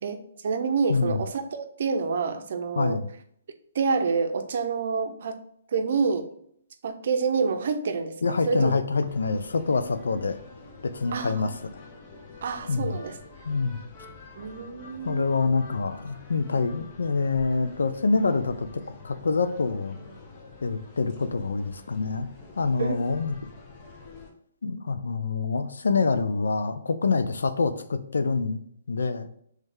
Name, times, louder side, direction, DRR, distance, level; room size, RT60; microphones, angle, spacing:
voice 1, 0.0-3.0 3.7-5.4 5.7-6.3 6.8-8.7 11.1-11.5 12.4-13.1 14.4-15.3 22.8-23.0, right 5 dB, 60° right, 8 dB, 0.5 m, -27 dB
voice 2, 0.9-1.2 2.8-3.1 8.2-10.4 10.8-11.5 12.7-13.0 13.5-13.8 15.0-20.0 20.6-22.3 22.6-23.4 24.6-28.6 28.9-29.3, left 4 dB, 85° left, 10 dB, 0.4 m, -26 dB
sound 1, 9.0-24.3, left 3 dB, 35° left, 0.8 m, -47 dB
3.2 x 3.2 x 3.6 m, 0.66 s
hypercardioid pair, 145°, 0 cm